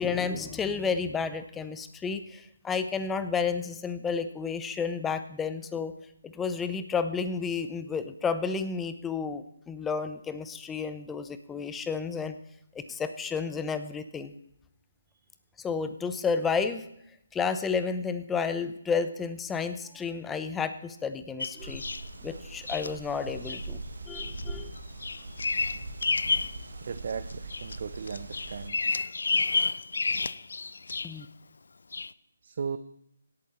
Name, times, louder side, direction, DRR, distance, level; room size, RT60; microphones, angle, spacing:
voice 1, 0.0-5.9 6.2-12.4 12.7-14.3 15.6-16.8 17.3-21.8 22.2-23.8 24.1-24.7 31.0-31.3, left 5 dB, 10° left, 11 dB, 0.7 m, -31 dB
Bird vocalization bird call bird song, 21.4-22.1 22.7-22.9 23.4-23.6 24.1-24.4 24.8-26.6 27.0-27.8 28.1-31.2 31.9-32.1, left 4 dB, 70° left, 0.4 m, -30 dB
sound 1, 21.6-28.7, right 2 dB, 70° right, 1.6 m, -41 dB
voice 2, 26.8-28.8 32.4-32.8, right 6 dB, 50° right, 11 dB, 0.6 m, -36 dB
17.5 x 8.3 x 4.3 m, 0.75 s
figure-of-eight pair, 150°, 0 cm